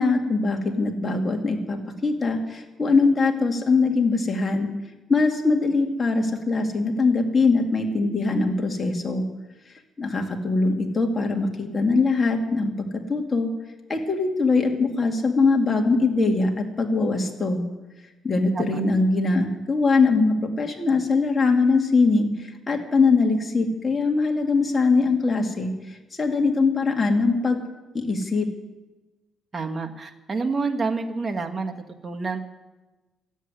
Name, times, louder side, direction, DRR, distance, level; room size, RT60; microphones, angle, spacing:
voice 1, 0.0-4.7 5.1-9.2 10.0-13.5 13.9-17.6 18.2-25.7 26.2-27.6 27.9-28.5, left 3 dB, 30° left, 2 dB, 2.4 m, -22 dB
voice 2, 29.5-31.7 32.0-32.4, right 4 dB, 30° right, 4 dB, 1.6 m, -28 dB
13.5 x 8.3 x 9.9 m, 1.1 s
cardioid pair, 90°, 0 cm